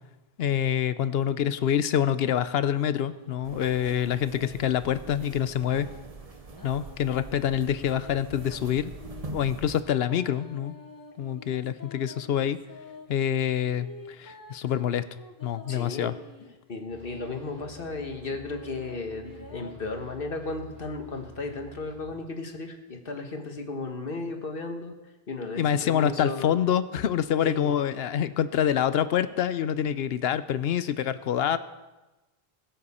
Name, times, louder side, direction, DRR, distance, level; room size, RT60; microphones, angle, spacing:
voice 1, 0.4-5.9 6.6-8.9 9.3-10.7 11.2-12.6 13.1-15.0 15.4-16.1 25.6-31.6, left 9 dB, 75° left, 13 dB, 0.8 m, -26 dB
sound 1, 3.0-6.1 6.5-9.3 10.1-13.1 13.6-16.6 17.1-19.7, left 3 dB, 20° left, 0.7 m, -48 dB
sound 2, 3.4-9.8, right 3 dB, 40° right, 0.9 m, -43 dB
voice 2, 15.7-16.2 16.7-24.9 25.3-26.5 27.4-27.7, left 3 dB, 60° left, 4 dB, 1.5 m, -35 dB
sound 3, 16.9-22.2, right 1 dB, 55° right, 3.0 m, -49 dB
21.0 x 7.7 x 4.2 m, 1.1 s
omnidirectional pair, 1.0 m